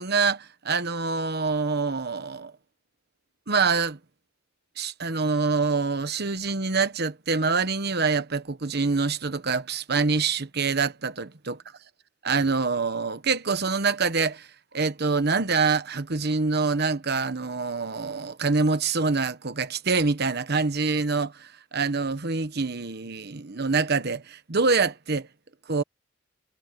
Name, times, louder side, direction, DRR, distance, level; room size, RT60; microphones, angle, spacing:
voice 1, 0.0-2.5 3.5-4.0 4.8-11.6 12.2-14.5 14.7-25.3 25.7-25.8, right 4 dB, 55° right, 1.2 m, -25 dB
head